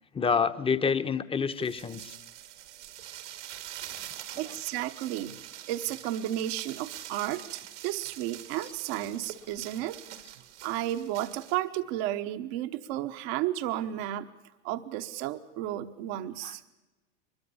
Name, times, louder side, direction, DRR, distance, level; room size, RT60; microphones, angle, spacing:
voice 1, 0.1-2.1 4.3-4.5 16.4-16.5, left 6 dB, 15° left, 11 dB, 1.0 m, -28 dB
sound 1, 1.5-11.6, right 12 dB, 85° right, 2.2 m, -45 dB
voice 2, 4.4-5.4 5.7-10.0 10.6-14.3 14.6-16.6, right 13 dB, 60° right, 9 dB, 1.1 m, -33 dB
23.0 x 21.5 x 7.1 m, 1.1 s
hypercardioid pair, 100°, 34 cm